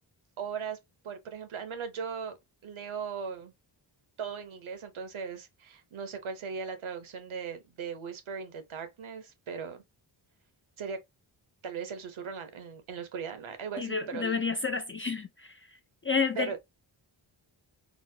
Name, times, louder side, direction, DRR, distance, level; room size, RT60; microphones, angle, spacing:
voice 1, 0.4-0.8 1.0-2.4 2.6-3.5 4.2-9.8 10.8-11.0 11.6-14.4 16.4-16.6, right 6 dB, 75° right, 0.9 m, -38 dB
voice 2, 13.8-15.6 16.0-16.6, left 5 dB, 30° left, 0.3 m, -30 dB
4.1 x 2.0 x 2.7 m
cardioid pair, 75°, 49 cm